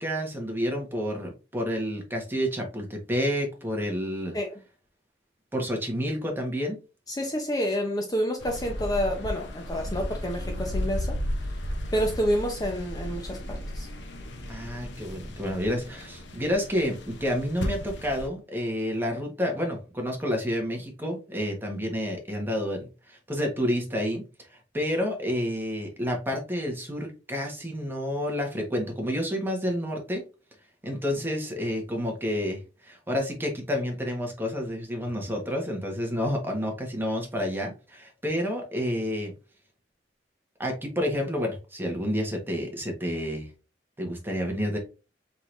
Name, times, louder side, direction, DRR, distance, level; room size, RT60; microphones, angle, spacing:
voice 1, 0.0-4.4 5.5-6.8 14.5-24.2 24.5-30.2 30.8-39.3 40.6-43.5 44.0-44.8, equal, 10° right, 1 dB, 1.3 m, -29 dB
voice 2, 7.1-11.2 11.9-13.9, equal, 20° left, 2 dB, 0.7 m, -28 dB
sound 1, 8.4-18.3, equal, 70° left, 0.9 m, -34 dB
4.6 x 3.8 x 2.6 m, 0.31 s
head